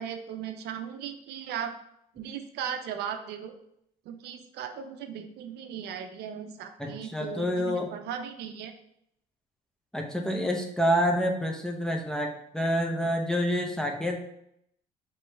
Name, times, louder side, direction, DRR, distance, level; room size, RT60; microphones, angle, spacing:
voice 1, 0.0-1.8 2.1-3.5 4.1-8.7, right 8 dB, 75° right, 7 dB, 0.5 m, -37 dB
voice 2, 6.8-7.9 9.9-14.2, equal, 5° left, 2 dB, 0.6 m, -28 dB
3.1 x 3.0 x 4.5 m, 0.75 s
cardioid pair, 110°, 17 cm